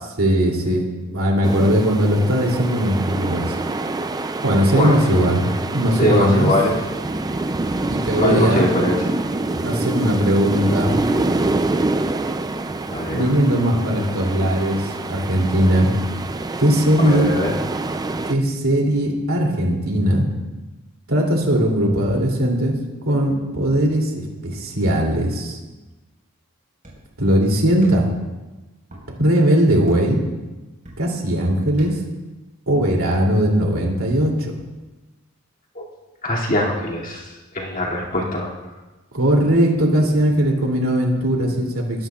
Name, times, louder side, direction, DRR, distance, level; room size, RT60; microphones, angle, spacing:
voice 1, 0.2-3.6 4.4-5.5 5.7-6.5 7.9-8.6 9.6-10.9 13.1-15.9 16.6-17.3 18.3-20.2 21.1-22.7 23.0-24.1 24.4-25.6 27.2-28.1 29.2-30.2 31.0-32.0 32.7-34.5 39.1-42.1, equal, 75° right, -1 dB, 2.8 m, -19 dB
sound 1, 1.4-18.3, right 2 dB, 20° right, 0.4 m, -26 dB
voice 2, 6.0-6.8 8.2-9.2 12.9-13.3 17.0-17.5 35.7-35.8 36.2-38.5, left 1 dB, 40° left, -3 dB, 2.5 m, -22 dB
sound 2, 26.8-27.2 27.8-28.2 28.8-29.1 29.9-30.2 30.8-31.2 31.8-32.2, right 1 dB, 40° right, 4.6 m, -40 dB
21.5 x 11.5 x 2.4 m, 1.2 s
head